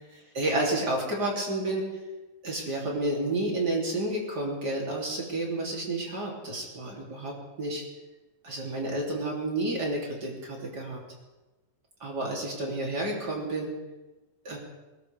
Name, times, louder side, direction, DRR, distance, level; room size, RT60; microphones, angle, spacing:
voice 1, 0.1-1.9 2.4-7.8 8.4-11.0 12.0-13.7 14.4-14.6, right 1 dB, 30° right, -2 dB, 3.4 m, -30 dB
21.0 x 19.5 x 3.5 m, 1.1 s
omnidirectional pair, 4.3 m